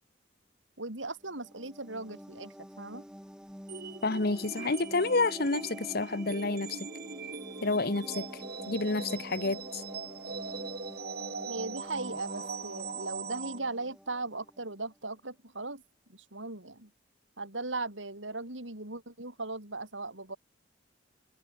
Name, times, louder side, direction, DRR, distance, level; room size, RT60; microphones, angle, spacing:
voice 1, 0.8-3.0 11.5-15.8 16.1-16.9 17.4-20.4, right 2 dB, 85° right, 7.2 m, -38 dB
sound 1, 1.2-14.8, equal, 5° right, 4.6 m, -48 dB
sound 2, 3.7-13.6, right 4 dB, 55° right, 6.8 m, -41 dB
voice 2, 4.0-6.8 7.6-8.3 8.7-9.8, left 3 dB, 55° left, 1.4 m, -29 dB
head